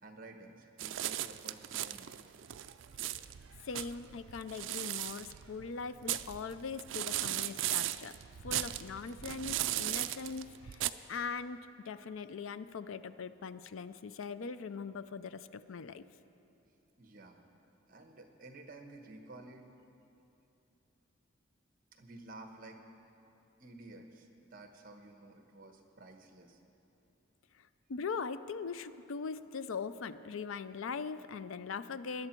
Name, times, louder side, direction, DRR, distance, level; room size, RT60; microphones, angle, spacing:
voice 1, 0.0-2.3 17.0-17.5 17.9-19.7 21.9-22.8 23.6-26.6, right 2 dB, 45° right, 5 dB, 1.1 m, -52 dB
sound 1, 0.8-10.9, right 13 dB, 70° right, 0.4 m, -37 dB
voice 2, 3.6-8.2 8.4-16.0 27.6-32.3, left 5 dB, 85° left, 13 dB, 0.5 m, -41 dB
20.0 x 11.0 x 4.5 m, 2.9 s
head